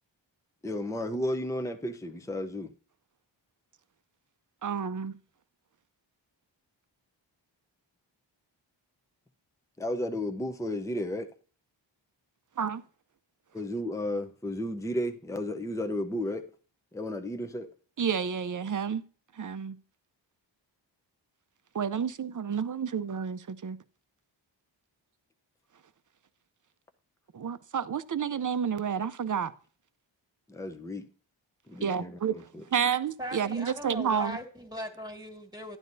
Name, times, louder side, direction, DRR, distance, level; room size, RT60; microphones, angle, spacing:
voice 1, 0.6-2.7 9.8-11.3 13.5-16.4 16.9-17.7 30.5-31.0 31.7-32.6, left 1 dB, 5° left, 0.7 m, -33 dB
voice 2, 4.6-5.1 12.6-12.8 18.0-19.0 19.4-19.8 21.7-23.8 27.3-29.5 31.8-32.3 32.7-34.4, right 7 dB, 40° right, 0.7 m, -30 dB
voice 3, 33.2-35.8, equal, 10° right, 2.0 m, -39 dB
12.0 x 9.2 x 2.7 m
cardioid pair, 50°, 48 cm